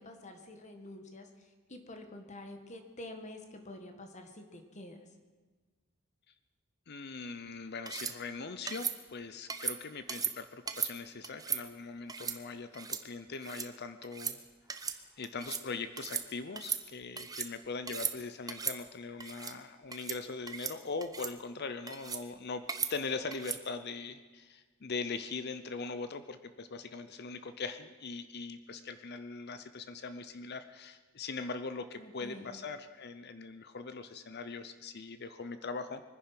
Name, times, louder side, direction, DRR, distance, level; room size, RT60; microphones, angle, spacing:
voice 1, 0.0-5.0 32.0-32.6, left 1 dB, 35° left, 5 dB, 1.7 m, -48 dB
voice 2, 6.9-14.4 15.2-22.6 22.9-36.0, left 4 dB, 55° left, 11 dB, 0.7 m, -41 dB
sound 1, 7.9-8.1 8.7-9.0 9.5-9.8 10.1-10.3 10.7-10.9 11.2-11.6 12.1-12.4 12.7-13.0 13.3-13.7 14.0-14.4 14.7-15.0 15.2-15.6 16.0-16.3 16.5-17.5 17.8-18.1 18.5-18.8 19.2-19.5 19.9-20.2 20.5-20.7 21.0-21.3 21.9-22.2 22.7-22.9 23.3-23.6, right 6 dB, 20° right, 0.8 m, -36 dB
23.0 x 10.5 x 5.9 m, 1.4 s
head